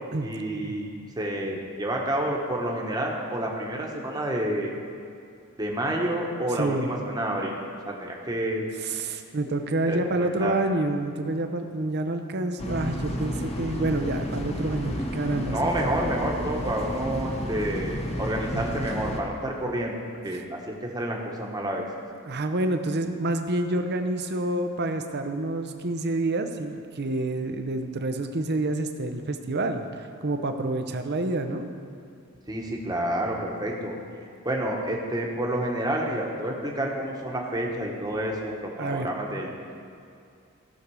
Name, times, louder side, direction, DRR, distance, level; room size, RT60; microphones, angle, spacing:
voice 1, 0.2-4.7 5.6-7.6 7.8-8.6 9.9-10.5 15.5-21.8 32.5-33.9 34.4-39.5, right 1 dB, 20° right, -1 dB, 1.3 m, -29 dB
voice 2, 8.8-15.6 18.5-18.7 20.3-20.4 22.2-31.7 38.8-39.1, right 2 dB, 45° right, 7 dB, 0.8 m, -28 dB
sound 1, 12.6-19.2, equal, 30° left, 1.0 m, -32 dB
16.5 x 6.5 x 4.8 m, 2.4 s
head